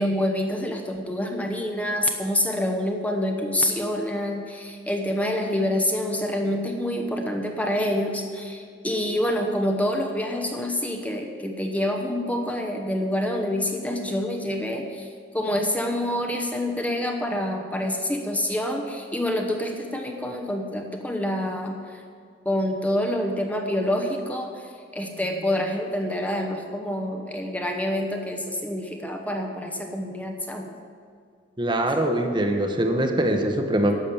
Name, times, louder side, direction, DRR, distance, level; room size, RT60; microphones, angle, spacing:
voice 1, 0.0-15.1 15.3-22.0 22.4-30.7, left 1 dB, 10° left, 3 dB, 0.9 m, -27 dB
voice 2, 31.6-33.9, right 1 dB, 25° right, 4 dB, 1.0 m, -23 dB
12.5 x 6.3 x 8.8 m, 2.2 s
head